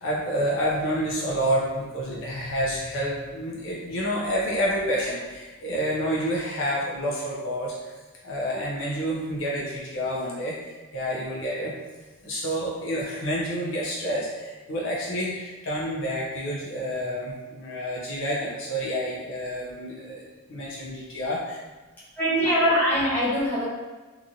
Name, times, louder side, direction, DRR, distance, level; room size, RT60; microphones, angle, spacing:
voice 1, 0.0-7.9 8.2-11.7 12.2-21.6, equal, 60° left, -5 dB, 0.6 m, -29 dB
voice 2, 22.2-23.7, equal, 10° left, -10 dB, 0.9 m, -22 dB
2.9 x 2.5 x 2.6 m, 1.3 s
head